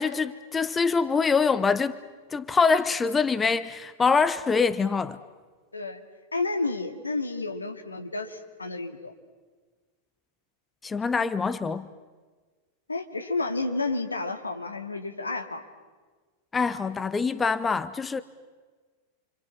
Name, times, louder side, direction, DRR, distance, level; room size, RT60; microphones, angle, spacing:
voice 1, 0.0-2.0 2.3-5.2 10.8-11.9 16.5-18.2, left 5 dB, 15° left, 0.9 m, -24 dB
voice 2, 6.3-9.1 12.9-15.6, left 3 dB, 80° left, 2.3 m, -31 dB
29.5 x 26.0 x 7.5 m
figure-of-eight pair, 90°, 0 cm